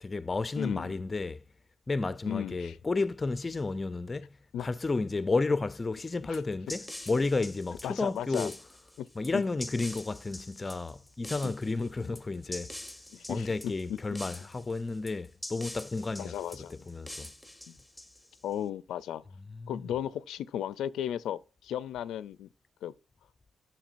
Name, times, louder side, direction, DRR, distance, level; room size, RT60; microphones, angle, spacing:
voice 1, 0.0-1.4 1.9-8.6 9.2-12.7 13.3-16.4 16.7-17.3 19.5-19.9, left 3 dB, 30° left, 0.4 m, -32 dB
voice 2, 0.6-1.0 2.3-2.8 4.5-4.7 6.3-6.4 7.8-8.5 9.0-9.1 9.3-9.4 11.4-11.5 12.0-12.2 13.1-14.0 16.2-16.8 17.7-17.8 18.4-19.2 19.7-22.5 22.8-22.9, left 10 dB, 90° left, 0.3 m, -35 dB
sound 1, 6.3-18.5, left 1 dB, ahead, 1.0 m, -45 dB
7.3 x 5.7 x 2.5 m
cardioid pair, 75°, 0 cm